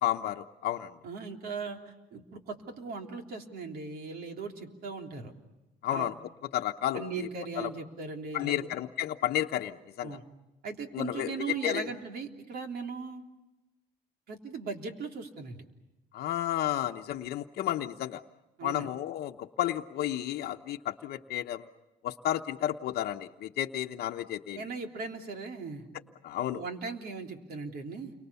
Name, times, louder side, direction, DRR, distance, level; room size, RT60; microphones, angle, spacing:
voice 1, 0.0-0.9 5.8-6.1 6.5-7.3 7.6-7.7 8.3-10.2 10.9-11.9 16.1-18.2 18.6-21.7 22.0-24.6 26.2-26.6, left 12 dB, 70° left, 4 dB, 0.9 m, -32 dB
voice 2, 1.0-5.3 5.9-6.1 6.9-8.6 10.0-10.2 10.6-13.2 14.3-15.6 18.6-18.9 24.5-25.9 26.5-28.1, right 4 dB, 65° right, 4 dB, 3.4 m, -38 dB
29.5 x 24.0 x 7.0 m, 1.0 s
cardioid pair, 110°, 17 cm